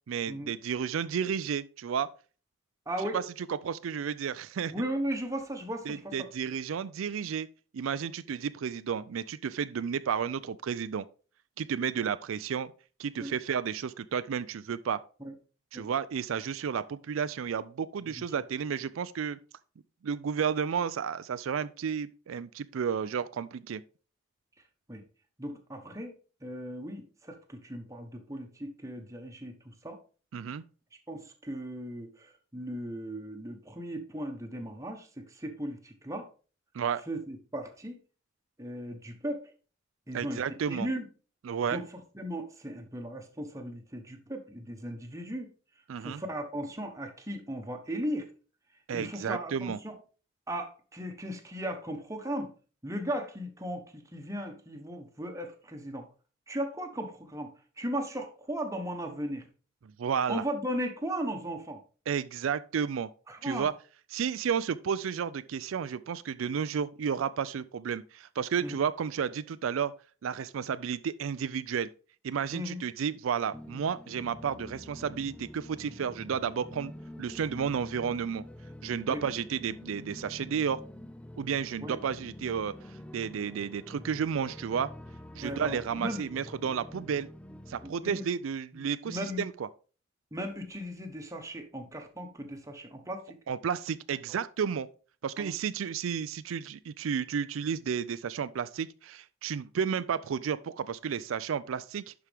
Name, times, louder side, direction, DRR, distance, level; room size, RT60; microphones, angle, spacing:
voice 1, 0.1-2.1 3.1-3.2 3.6-4.7 5.9-7.5 7.7-11.1 11.6-12.7 13.0-15.0 15.7-19.4 20.0-23.8 30.3-30.6 36.7-37.0 40.1-40.9 41.4-41.8 45.9-46.2 48.9-49.8 60.0-60.4 62.1-63.1 63.4-63.7 64.1-69.9 70.2-71.9 72.2-76.9 77.2-78.4 78.8-80.8 81.4-82.7 83.1-84.9 85.4-87.3 87.7-89.7 93.5-94.9 95.2-102.1, right 7 dB, 90° right, 0.4 m, -32 dB
voice 2, 2.9-3.2 4.7-6.1 13.2-13.3 15.2-15.3 15.7-15.9 18.2-18.3 24.9-25.0 25.4-26.1 26.4-30.0 31.1-36.3 37.1-38.0 38.6-39.4 40.1-40.4 40.7-41.1 41.7-41.8 42.1-45.5 46.0-48.3 48.9-49.9 50.5-52.5 52.8-56.1 56.5-57.5 57.8-59.4 60.3-61.8 63.3-63.7 68.6-68.8 72.5-72.8 76.2-76.3 79.1-79.2 81.8-82.0 85.4-86.3 87.8-88.2 88.7-89.4 90.3-93.4 95.4-95.5, equal, 15° right, 1.1 m, -37 dB
sound 1, 73.5-87.9, left 1 dB, 5° left, 0.3 m, -46 dB
11.5 x 4.7 x 3.5 m
head